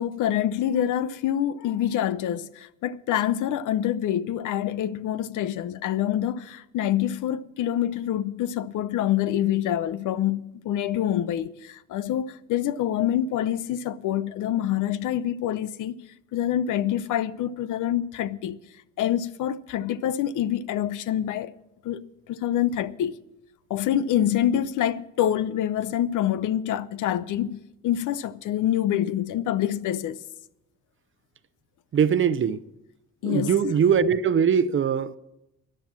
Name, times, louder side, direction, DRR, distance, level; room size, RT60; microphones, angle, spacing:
voice 1, 0.0-15.9 16.3-18.6 19.0-21.5 21.8-22.0 22.3-23.1 23.7-30.2 33.2-33.6, left 11 dB, 85° left, 0.7 m, -26 dB
voice 2, 31.9-32.6 33.2-35.2, right 7 dB, 40° right, 0.7 m, -21 dB
13.5 x 10.5 x 7.4 m
cardioid pair, 90°, 30 cm